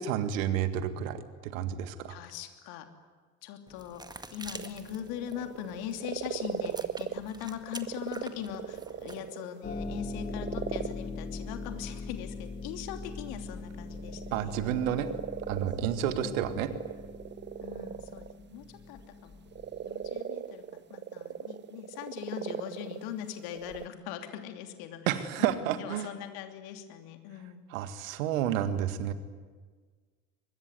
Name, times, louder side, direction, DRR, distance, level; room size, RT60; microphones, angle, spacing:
voice 1, 0.0-2.2 14.3-15.1 15.5-16.7 25.1-26.1 27.7-29.1, right 10 dB, 65° right, 11 dB, 1.9 m, -30 dB
voice 2, 2.1-2.9 3.4-14.6 16.1-16.5 17.6-19.4 19.8-25.0 25.4-27.6, left 10 dB, 60° left, 6 dB, 3.0 m, -41 dB
sound 1, 3.7-9.3, right 2 dB, 10° right, 1.9 m, -48 dB
sound 2, 4.5-7.4 7.6-9.6 10.1-11.1 13.6-18.4 19.2-19.3 19.5-23.1 23.4-23.9, right 9 dB, 25° right, 0.8 m, -39 dB
Harp, 9.6-20.2, left 3 dB, 25° left, 2.9 m, -41 dB
24.5 x 22.0 x 9.5 m, 1.5 s
figure-of-eight pair, 60°, 42 cm